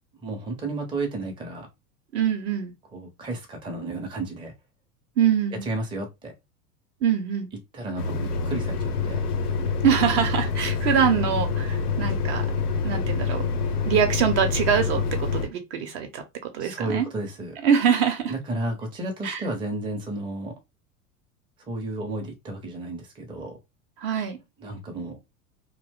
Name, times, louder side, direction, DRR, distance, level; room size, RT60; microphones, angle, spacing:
voice 1, 0.2-1.7 2.9-4.5 5.6-6.3 7.7-9.2 16.6-17.6 18.3-20.5 21.7-23.6 24.6-25.2, right 2 dB, 10° right, 0.6 m, -32 dB
voice 2, 2.1-2.7 5.2-5.6 7.0-7.5 9.8-12.5 12.8-13.4 13.8-17.1 17.6-18.3 19.2-19.4 24.0-24.4, right 8 dB, 45° right, 0.8 m, -24 dB
sound 1, 8.0-15.5, left 5 dB, 80° left, 0.7 m, -26 dB
2.5 x 2.1 x 3.5 m
figure-of-eight pair, 85°, 45 cm